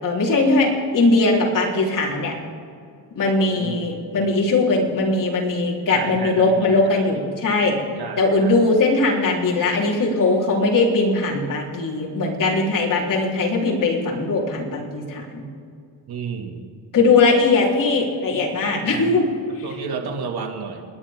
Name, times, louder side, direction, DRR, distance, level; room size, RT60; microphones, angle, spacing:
voice 1, 0.0-2.3 3.2-7.8 8.2-15.4 16.9-19.3 19.5-19.7, left 3 dB, 45° left, -3 dB, 4.0 m, -20 dB
voice 2, 5.9-7.3 8.0-8.6 16.1-16.6 18.8-19.2 19.6-20.8, right 6 dB, 60° right, 3 dB, 2.4 m, -32 dB
29.5 x 11.0 x 3.8 m, 2.4 s
cardioid pair, 105°, 42 cm